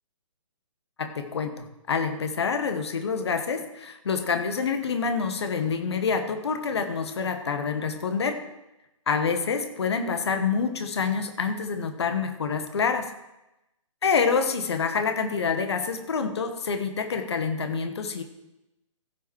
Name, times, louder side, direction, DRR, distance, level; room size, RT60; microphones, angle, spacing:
voice 1, 1.0-8.4 9.1-13.1 14.0-18.2, left 5 dB, 55° left, 8 dB, 1.3 m, -27 dB
15.5 x 5.8 x 4.7 m, 0.93 s
figure-of-eight pair, 130°, 17 cm